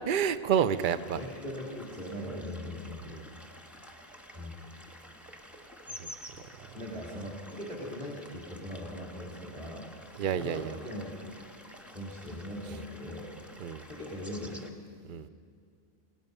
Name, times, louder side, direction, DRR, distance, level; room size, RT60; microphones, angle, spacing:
voice 1, 0.1-1.2 3.1-3.2 6.0-6.1 10.2-10.7 13.6-13.8 15.1-15.3, right 8 dB, 50° right, 13 dB, 0.8 m, -29 dB
sound 1, 0.7-14.7, equal, ahead, 1.5 m, -50 dB
voice 2, 1.1-3.1 4.3-4.6 6.7-9.9 10.4-11.1 11.9-13.3 13.9-14.7, equal, 25° right, -4 dB, 3.7 m, -40 dB
28.5 x 18.0 x 5.4 m, 2.4 s
omnidirectional pair, 1.2 m